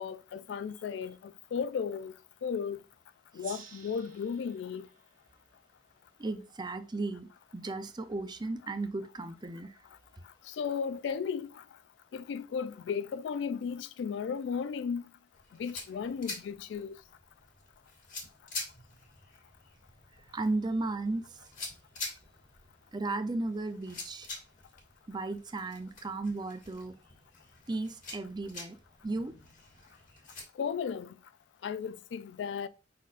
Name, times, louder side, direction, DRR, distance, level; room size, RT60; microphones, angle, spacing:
voice 1, 0.0-2.1 2.4-2.8 3.3-4.9 10.5-11.6 12.1-15.0 15.6-17.0 30.6-31.1 31.6-32.7, left 6 dB, 70° left, 0.3 m, -35 dB
Gong, 3.4-6.5, right 6 dB, 50° right, 1.1 m, -53 dB
voice 2, 6.2-9.7 20.3-21.4 22.9-24.3 25.1-26.9 27.7-28.8 29.0-29.3, right 2 dB, 25° right, 0.5 m, -35 dB
sound 1, 15.3-30.4, left 3 dB, 45° left, 2.1 m, -47 dB
5.2 x 4.1 x 2.5 m
head